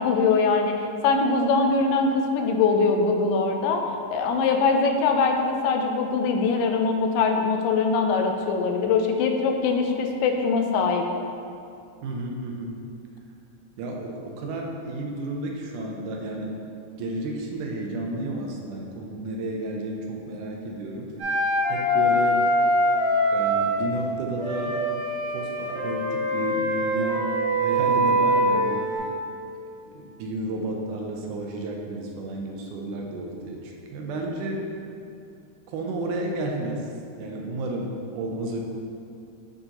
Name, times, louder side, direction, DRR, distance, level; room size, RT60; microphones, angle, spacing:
voice 1, 0.0-3.8 4.1-11.1, left 4 dB, 85° left, 3 dB, 2.2 m, -22 dB
voice 2, 12.0-12.7 13.8-16.5 17.0-21.1 21.7-22.4 23.3-24.8 25.3-27.3 27.6-28.9 29.8-34.7 35.7-36.9 37.2-38.6, right 2 dB, 75° right, 0 dB, 2.0 m, -32 dB
Wind instrument woodwind instrument, 21.2-23.8 24.4-29.0, equal, 55° right, 1.7 m, -23 dB
8.8 x 3.9 x 2.9 m, 2.5 s
omnidirectional pair, 3.8 m